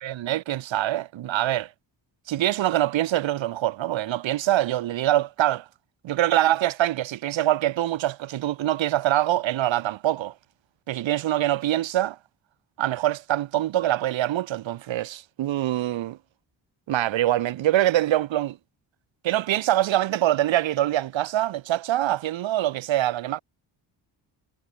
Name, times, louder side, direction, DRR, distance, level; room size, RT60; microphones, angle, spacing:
voice 1, 0.0-1.7 2.3-5.6 6.0-10.3 10.9-12.2 12.8-16.2 16.9-18.6 19.2-23.4, right 13 dB, 80° right, 1.0 m, -24 dB
cardioid pair, 105°, 46 cm